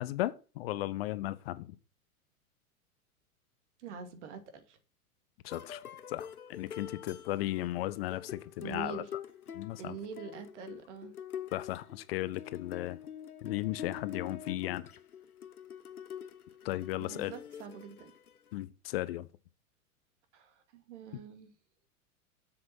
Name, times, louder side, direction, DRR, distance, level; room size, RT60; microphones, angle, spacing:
voice 1, 0.0-1.7 5.4-5.8 6.1-9.0 9.5-10.0 11.5-13.0 13.4-14.9 16.6-17.3 18.5-19.3, left 16 dB, 45° left, 0.7 m, -35 dB
voice 2, 3.8-4.8 8.6-9.1 9.8-11.1 17.0-18.1 20.3-21.5, right 6 dB, 55° right, 2.3 m, -45 dB
sound 1, 5.5-18.6, left 8 dB, 80° left, 1.0 m, -46 dB
7.8 x 7.6 x 5.9 m
figure-of-eight pair, 95°, 44 cm